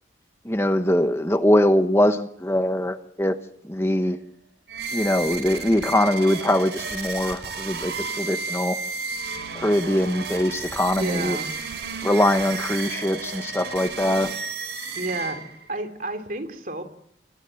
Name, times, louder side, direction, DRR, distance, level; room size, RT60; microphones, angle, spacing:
voice 1, 0.4-3.4 3.7-4.2 4.9-8.8 9.6-11.4 12.0-14.3, left 1 dB, 15° left, 8 dB, 1.0 m, -22 dB
sound 1, 4.7-15.7, right 4 dB, 70° right, 4.7 m, -32 dB
voice 2, 11.0-11.5 14.9-15.4 15.7-16.8, right 2 dB, 50° right, 6 dB, 3.1 m, -30 dB
27.0 x 19.5 x 7.7 m, 0.72 s
head